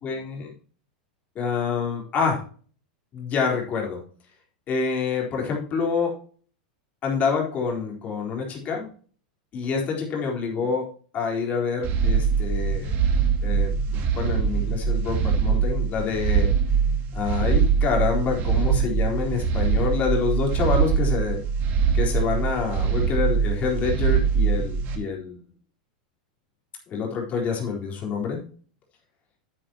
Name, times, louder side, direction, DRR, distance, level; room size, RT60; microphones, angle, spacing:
voice 1, 0.0-0.5 1.4-2.4 3.1-4.0 4.7-6.2 7.0-8.9 9.5-10.9 11.1-12.9 13.4-16.5 17.1-21.4 21.9-25.4 26.9-28.4, left 5 dB, 35° left, 0 dB, 3.9 m, -27 dB
sound 1, 11.8-25.0, right 6 dB, 45° right, 2.3 m, -23 dB
9.4 x 9.1 x 2.9 m, 0.42 s
hypercardioid pair, 120°, 5 cm